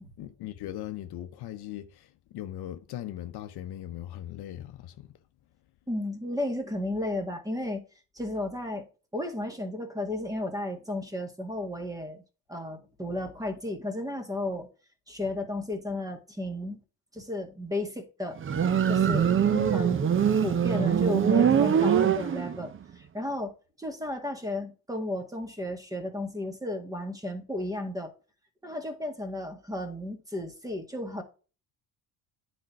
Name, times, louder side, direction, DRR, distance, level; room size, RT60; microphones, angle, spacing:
voice 1, 0.2-5.1 19.5-19.8, left 12 dB, 65° left, 0.9 m, -39 dB
voice 2, 5.9-7.8 8.2-8.9 9.1-12.2 12.5-14.7 15.1-16.8 17.1-18.4 18.9-19.3 19.7-20.0 20.4-23.5 23.8-28.1 28.6-31.2, left 1 dB, 10° right, 1.9 m, -33 dB
Motorcycle, 18.4-22.8, right 8 dB, 30° right, 0.7 m, -23 dB
9.3 x 4.5 x 4.7 m
cardioid pair, 110°, 42 cm